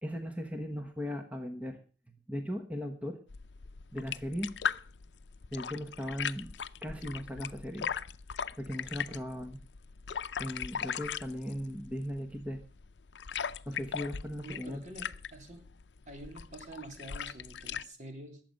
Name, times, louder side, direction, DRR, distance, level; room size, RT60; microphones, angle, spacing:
voice 1, 0.0-1.8 2.1-3.2 3.9-4.5 5.5-6.5 6.8-7.9 8.6-9.6 10.4-12.6 13.7-14.8, equal, 10° right, 4 dB, 1.1 m, -38 dB
sound 1, 3.3-17.9, left 7 dB, 80° left, 0.5 m, -39 dB
voice 2, 14.4-15.7 16.1-18.4, right 1 dB, 45° right, 4 dB, 3.1 m, -47 dB
20.5 x 7.7 x 5.3 m, 0.37 s
head